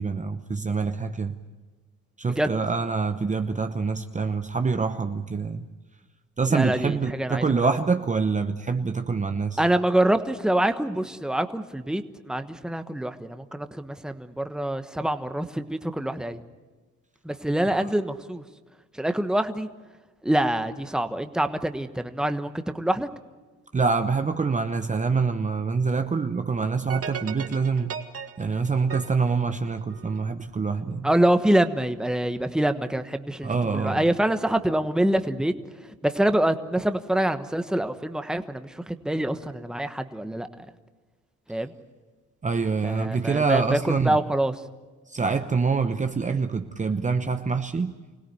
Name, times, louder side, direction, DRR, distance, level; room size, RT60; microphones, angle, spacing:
voice 1, 0.0-1.4 2.2-5.6 6.4-9.6 17.8-17.9 23.7-28.0 28.4-31.1 33.4-34.0 42.4-44.2 45.1-47.9, right 4 dB, 25° right, 7 dB, 0.9 m, -25 dB
voice 2, 6.5-7.4 9.6-16.4 17.2-18.4 19.0-19.7 20.2-23.1 31.0-35.5 36.0-40.5 41.5-41.7 42.8-44.5, right 1 dB, ahead, 9 dB, 1.2 m, -25 dB
sound 1, 26.9-30.3, right 7 dB, 50° right, 1.9 m, -37 dB
25.0 x 17.5 x 9.4 m, 1.3 s
cardioid pair, 90°, 30 cm